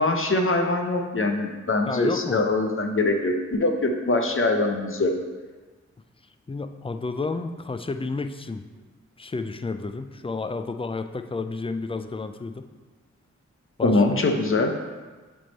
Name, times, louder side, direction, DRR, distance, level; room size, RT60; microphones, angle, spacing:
voice 1, 0.0-5.1 13.8-14.7, left 2 dB, 45° left, 3 dB, 0.8 m, -23 dB
voice 2, 1.9-2.4 6.5-8.7 9.2-12.7 13.8-14.0, left 3 dB, 20° left, 8 dB, 0.4 m, -31 dB
7.4 x 3.5 x 4.1 m, 1.3 s
cardioid pair, 45°, 29 cm